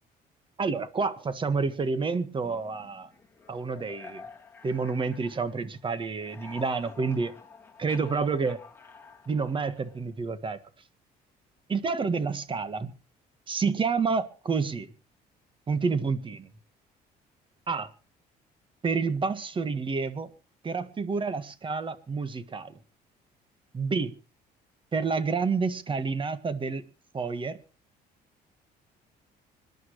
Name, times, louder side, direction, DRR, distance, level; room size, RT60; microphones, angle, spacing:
voice 1, 0.6-3.1 3.5-4.2 4.6-7.3 7.8-8.6 9.3-10.6 11.7-12.9 13.5-14.9 15.7-16.5 17.7-17.9 18.8-20.3 20.6-22.7 23.7-24.1 24.9-26.8 27.1-27.6, right 4 dB, 30° right, 13 dB, 1.6 m, -29 dB
sound 1, 2.3-5.8 6.1-10.1, left 5 dB, 15° left, 3.0 m, -50 dB
25.0 x 11.0 x 3.1 m, 0.35 s
cardioid pair, 110°, 17 cm